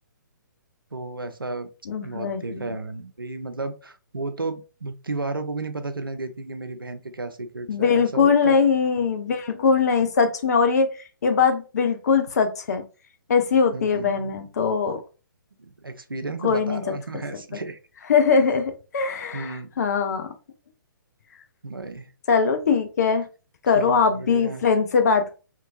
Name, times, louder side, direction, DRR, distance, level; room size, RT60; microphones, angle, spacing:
voice 1, 0.9-1.7 2.0-8.7 13.7-14.5 15.6-17.8 19.3-19.7 21.6-22.1 23.7-24.7, right 3 dB, 85° right, 8 dB, 0.5 m, -33 dB
voice 2, 1.9-2.7 7.7-10.9 11.2-12.8 13.3-15.0 16.4-16.9 18.1-20.3 22.3-23.2 23.6-25.3, left 5 dB, 50° left, 6 dB, 0.6 m, -21 dB
2.9 x 2.6 x 2.4 m, 0.32 s
figure-of-eight pair, 125°, 11 cm